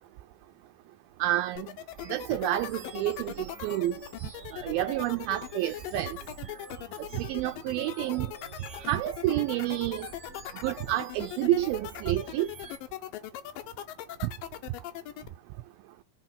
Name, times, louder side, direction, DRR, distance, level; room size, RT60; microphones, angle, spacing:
voice 1, 1.2-1.7 2.1-3.9 4.5-6.2 7.2-8.3 8.9-10.1 10.6-12.5, right 15 dB, 80° right, 2.4 m, -29 dB
sound 1, 1.6-15.3, left 13 dB, 75° left, 2.2 m, -40 dB
sound 2, 2.0-12.8, right 3 dB, 30° right, 1.6 m, -48 dB
6.5 x 3.0 x 5.6 m
omnidirectional pair, 4.4 m